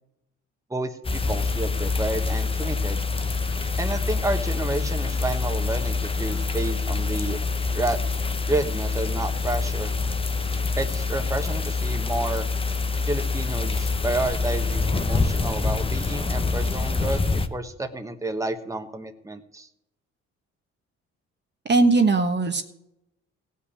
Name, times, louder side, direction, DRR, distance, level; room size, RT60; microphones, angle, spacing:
voice 1, 0.7-3.0 3.8-7.4 7.7-8.0 8.5-9.9 10.8-12.5 13.1-17.2 17.5-19.7, right 2 dB, 10° right, 5 dB, 1.3 m, -30 dB
sound 1, 1.0-17.5, left 4 dB, 20° left, 0.9 m, -26 dB
voice 2, 21.7-22.6, right 3 dB, 35° right, 6 dB, 1.3 m, -19 dB
17.0 x 5.6 x 8.6 m, 0.82 s
cardioid pair, 90°, 30 cm